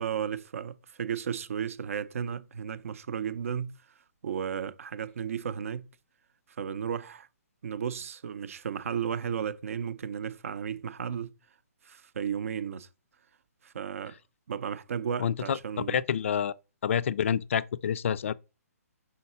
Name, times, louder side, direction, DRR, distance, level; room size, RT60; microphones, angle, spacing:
voice 1, 0.0-3.7 4.2-5.9 6.6-7.3 7.6-11.3 11.8-12.9 13.6-14.2 14.5-16.0, right 8 dB, 60° right, 0.5 m, -34 dB
voice 2, 15.2-15.6 15.9-16.5 16.8-18.3, left 8 dB, 50° left, 0.4 m, -28 dB
5.8 x 3.9 x 4.2 m
hypercardioid pair, 155°, 9 cm